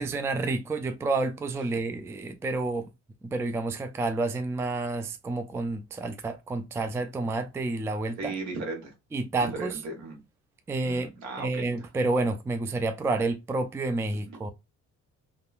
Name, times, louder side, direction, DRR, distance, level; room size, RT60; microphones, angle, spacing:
voice 1, 0.0-2.9 3.2-8.3 9.1-9.8 10.7-11.1 11.4-14.5, right 3 dB, 10° right, 0.3 m, -29 dB
voice 2, 8.2-8.9 9.4-10.2 10.8-11.7, right 3 dB, 75° right, 1.4 m, -36 dB
3.5 x 2.2 x 2.4 m
cardioid pair, 115°, 29 cm